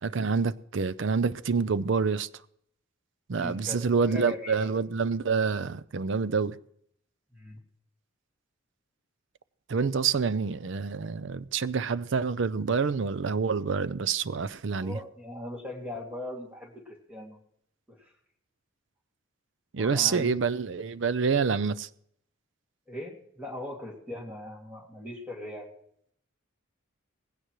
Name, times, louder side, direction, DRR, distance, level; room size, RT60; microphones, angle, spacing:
voice 1, 0.0-2.3 3.3-6.6 9.7-15.0 19.7-21.9, right 5 dB, 60° right, 0.5 m, -27 dB
voice 2, 3.3-4.7 7.3-7.6 14.7-17.4 17.9-18.1 19.8-20.4 22.9-25.7, left 1 dB, 5° right, 2.4 m, -40 dB
19.5 x 16.5 x 3.1 m
head